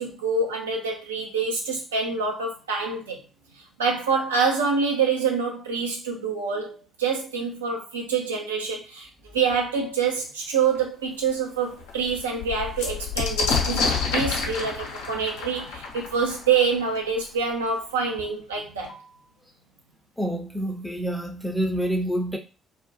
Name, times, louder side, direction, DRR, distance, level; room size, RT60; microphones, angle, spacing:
voice 1, 0.0-3.2 3.8-18.9, right 5 dB, 80° right, 0.4 m, -26 dB
sound 1, 10.7-10.8 11.3-11.4 11.7-17.2 18.2-18.3 18.5-19.1, left 5 dB, 65° left, 0.5 m, -29 dB
voice 2, 20.2-22.4, right 1 dB, ahead, 0.5 m, -27 dB
2.3 x 2.1 x 2.7 m
figure-of-eight pair, 45°, 0 cm